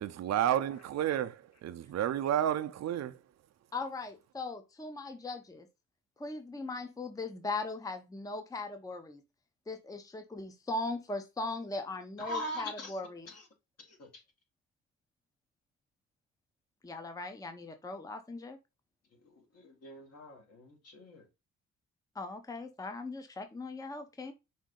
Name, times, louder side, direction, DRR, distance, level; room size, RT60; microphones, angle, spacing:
voice 1, 0.0-3.2, right 11 dB, 60° right, 0.6 m, -31 dB
voice 2, 3.7-5.7 6.2-9.2 9.7-13.3 16.8-18.6 22.1-24.3, left 3 dB, 10° left, 0.7 m, -39 dB
voice 3, 12.2-13.0 13.3-13.5 13.8-14.2 19.2-21.3, equal, 55° left, 1.9 m, -42 dB
5.1 x 2.7 x 3.7 m
cardioid pair, 90°, 30 cm